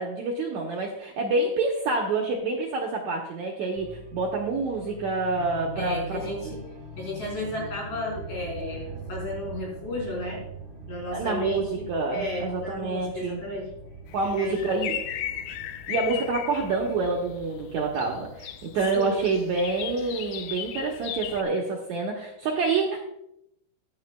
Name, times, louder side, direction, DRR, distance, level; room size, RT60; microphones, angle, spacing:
voice 1, 0.0-6.6 11.1-13.4 14.1-15.0 15.9-23.0, right 3 dB, 65° right, -1 dB, 1.9 m, -27 dB
sound 1, 3.8-20.1, right 3 dB, 35° right, 2.4 m, -43 dB
voice 2, 5.8-6.6 7.0-10.4 10.9-13.7 14.4-14.6 18.9-19.2, left 2 dB, 55° left, -3 dB, 5.6 m, -33 dB
sound 2, 14.1-21.4, left 12 dB, 80° left, 2.1 m, -37 dB
15.0 x 10.5 x 2.3 m, 0.80 s
omnidirectional pair, 4.5 m